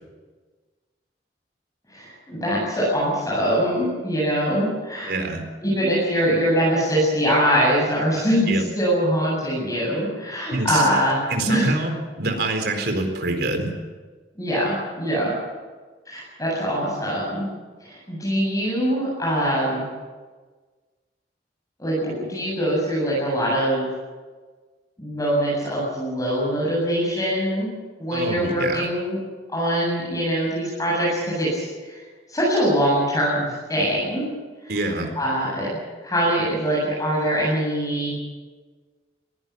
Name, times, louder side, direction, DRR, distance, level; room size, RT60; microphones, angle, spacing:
voice 1, 1.9-5.1 5.6-11.7 14.4-15.3 16.1-17.4 17.8-19.8 21.8-23.9 25.0-27.7 28.0-29.2 29.5-32.0 32.3-34.3 34.6-35.7 36.0-38.1, equal, 20° left, -6 dB, 8.0 m, -23 dB
voice 2, 5.1-5.4 8.5-8.6 10.5-10.9 11.3-13.7 28.1-28.9 34.7-35.1, right 2 dB, 65° right, 5 dB, 4.2 m, -25 dB
22.5 x 16.5 x 9.8 m, 1.4 s
head